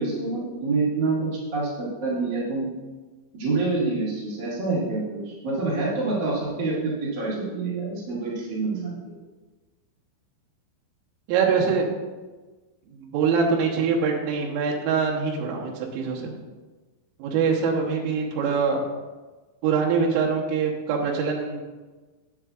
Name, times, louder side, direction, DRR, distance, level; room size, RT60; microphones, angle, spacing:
voice 1, 0.0-2.7 3.3-9.1, right 3 dB, 65° right, -7 dB, 1.0 m, -27 dB
voice 2, 11.3-11.9 13.0-16.3 17.2-18.8 19.6-21.7, right 5 dB, 85° right, -1 dB, 3.7 m, -24 dB
9.7 x 8.4 x 2.5 m, 1.3 s
omnidirectional pair, 5.7 m